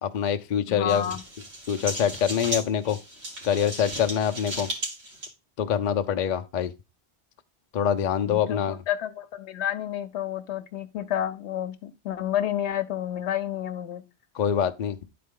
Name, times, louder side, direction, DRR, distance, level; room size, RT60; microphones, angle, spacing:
voice 1, 0.0-1.1 1.7-3.0 3.4-4.7 5.6-6.7 7.7-8.8 14.3-15.0, left 8 dB, 50° left, 0.6 m, -25 dB
voice 2, 0.7-1.2 8.2-14.0, left 10 dB, 80° left, 1.0 m, -30 dB
sound 1, 0.9-5.3, right 1 dB, 75° right, 2.1 m, -35 dB
10.5 x 4.3 x 3.6 m
omnidirectional pair, 1.1 m